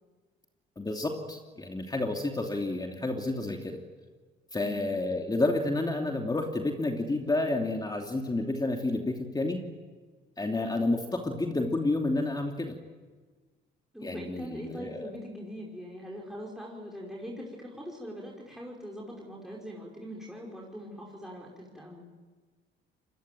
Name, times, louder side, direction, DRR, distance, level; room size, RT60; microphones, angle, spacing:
voice 1, 0.8-3.8 4.5-9.6 10.4-12.7 14.0-15.1, left 2 dB, 20° left, 2 dB, 2.9 m, -30 dB
voice 2, 4.6-4.9 13.9-22.1, equal, ahead, -3 dB, 5.3 m, -42 dB
25.5 x 21.5 x 9.3 m, 1.4 s
cardioid pair, 90°, 20 cm